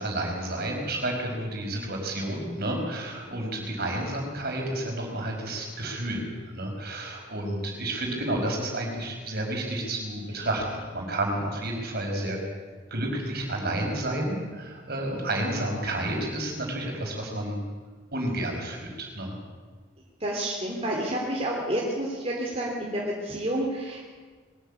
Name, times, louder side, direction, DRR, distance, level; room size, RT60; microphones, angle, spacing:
voice 1, 0.0-12.4 12.9-17.6 18.1-19.4, right 1 dB, 50° right, 1 dB, 5.3 m, -30 dB
voice 2, 20.2-24.0, right 1 dB, 30° right, -3 dB, 3.4 m, -29 dB
22.0 x 14.0 x 8.7 m, 1.5 s
head